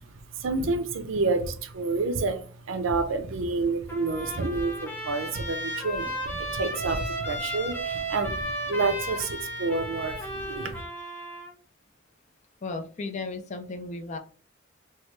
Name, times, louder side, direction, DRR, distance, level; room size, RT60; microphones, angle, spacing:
voice 1, 0.4-10.8, right 3 dB, 75° right, 10 dB, 0.5 m, -29 dB
Trumpet, 3.9-11.5, right 1 dB, 10° left, 1.0 m, -34 dB
voice 2, 12.6-14.2, left 3 dB, 35° left, 6 dB, 0.4 m, -35 dB
3.1 x 2.2 x 3.0 m, 0.40 s
head